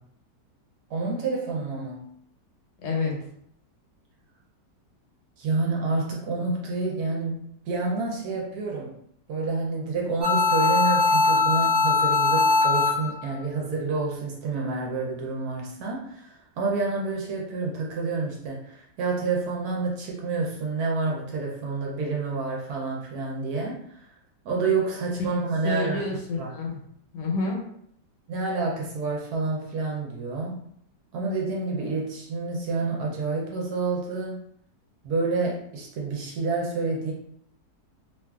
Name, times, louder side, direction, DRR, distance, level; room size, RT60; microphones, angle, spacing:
voice 1, 0.9-2.1 5.4-9.0 9.3-24.1 24.4-26.0 26.4-26.5 28.3-30.6 31.1-34.4 35.0-37.1, right 3 dB, 70° right, -1 dB, 1.0 m, -28 dB
voice 2, 2.8-3.1 25.3-26.8 27.1-27.6, left 3 dB, 85° left, -1 dB, 1.4 m, -29 dB
sound 1, 10.2-13.2, left 3 dB, 25° right, 0.4 m, -21 dB
2.9 x 2.4 x 2.3 m, 0.68 s
omnidirectional pair, 1.9 m